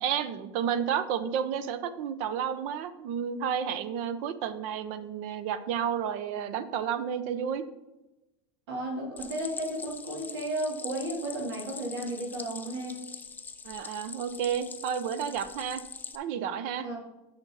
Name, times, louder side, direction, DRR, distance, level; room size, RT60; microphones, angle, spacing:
voice 1, 0.0-7.6 13.6-15.8 16.1-16.9, right 8 dB, 60° right, 13 dB, 0.7 m, -31 dB
voice 2, 8.7-13.0 16.8-17.0, right 1 dB, 80° right, -1 dB, 2.9 m, -33 dB
Stream, 9.2-16.2, left 5 dB, 15° left, 0.5 m, -43 dB
6.7 x 6.0 x 5.5 m, 0.99 s
supercardioid pair, 130°, 14 cm